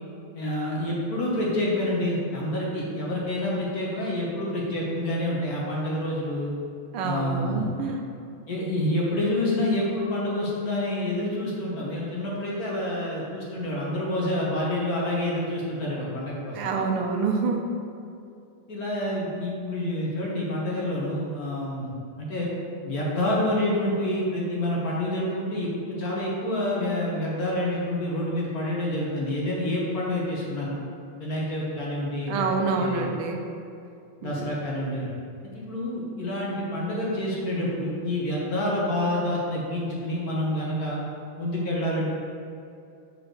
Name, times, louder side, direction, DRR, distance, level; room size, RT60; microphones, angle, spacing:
voice 1, 0.3-6.5 7.0-7.7 8.5-16.6 18.7-22.5 22.8-30.8 31.2-32.5 32.8-33.1 34.2-35.1 35.5-41.0 41.4-42.1, left 1 dB, 50° left, -5 dB, 1.5 m, -28 dB
voice 2, 6.9-8.0 16.5-17.7 32.3-33.4 34.2-34.6, right 4 dB, 85° right, 3 dB, 1.7 m, -27 dB
5.2 x 4.8 x 6.2 m, 2.5 s
omnidirectional pair, 2.4 m